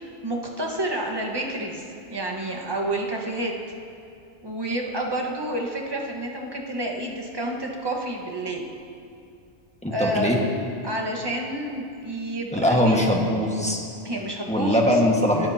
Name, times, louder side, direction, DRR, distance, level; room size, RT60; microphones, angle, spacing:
voice 1, 0.0-3.5 4.4-8.7 9.9-10.3 10.8-13.0 14.0-14.9, right 1 dB, 20° right, -1 dB, 1.5 m, -29 dB
voice 2, 9.8-10.4 12.5-13.8 14.5-15.5, left 1 dB, 5° left, -2 dB, 1.6 m, -21 dB
21.5 x 13.0 x 2.9 m, 2.5 s
omnidirectional pair, 1.2 m